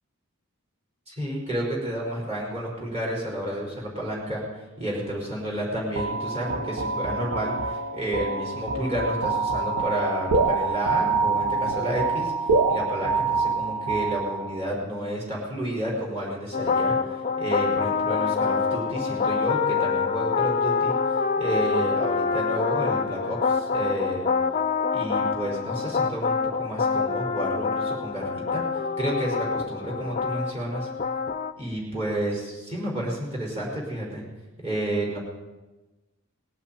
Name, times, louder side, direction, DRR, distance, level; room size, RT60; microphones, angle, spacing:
voice 1, 1.1-4.4 4.8-12.3 12.7-20.9 21.4-24.3 24.9-30.9 31.6-34.2 34.6-35.2, right 1 dB, 30° right, -3 dB, 5.1 m, -31 dB
sound 1, 6.0-14.7, right 4 dB, 70° right, 1.1 m, -26 dB
sound 2, 16.5-31.5, left 5 dB, 35° left, 0.5 m, -26 dB
19.0 x 8.5 x 8.9 m, 1.2 s
head